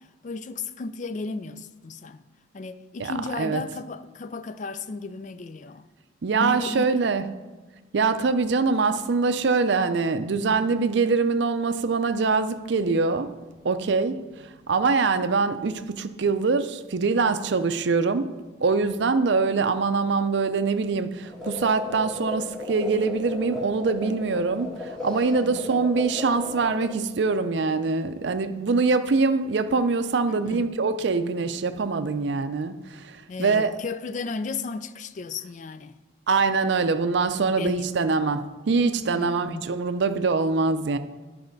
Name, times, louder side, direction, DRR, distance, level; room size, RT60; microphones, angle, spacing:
voice 1, 0.0-2.2 2.5-5.9 6.4-6.9 25.4-25.9 30.2-30.7 33.3-36.0 37.4-37.9 39.1-39.7, left 4 dB, 40° left, 0.3 m, -34 dB
voice 2, 3.0-3.6 6.2-7.2 7.9-13.3 13.6-18.3 18.6-33.8 36.3-41.0, right 4 dB, 65° right, 0.5 m, -24 dB
sound 1, 21.3-26.9, left 3 dB, 5° left, 1.6 m, -35 dB
10.5 x 4.3 x 5.2 m
head